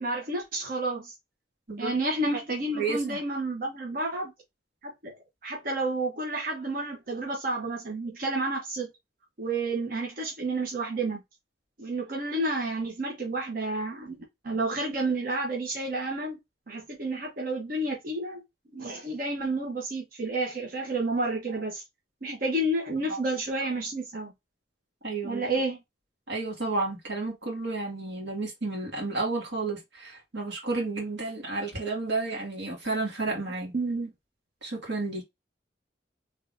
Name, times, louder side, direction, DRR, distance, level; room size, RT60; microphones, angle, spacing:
voice 1, 0.0-1.1 1.8-4.3 4.8-5.1 5.4-8.9 9.4-11.2 11.8-14.2 14.4-16.4 16.7-18.4 18.7-21.8 22.2-24.3 25.2-25.8 33.7-34.1, right 2 dB, 55° right, 1.0 m, -30 dB
voice 2, 2.7-3.2 22.3-22.4 23.1-23.2 25.0-25.5 26.3-33.7 34.6-35.2, right 3 dB, 90° right, 1.9 m, -31 dB
3.6 x 3.2 x 2.5 m
head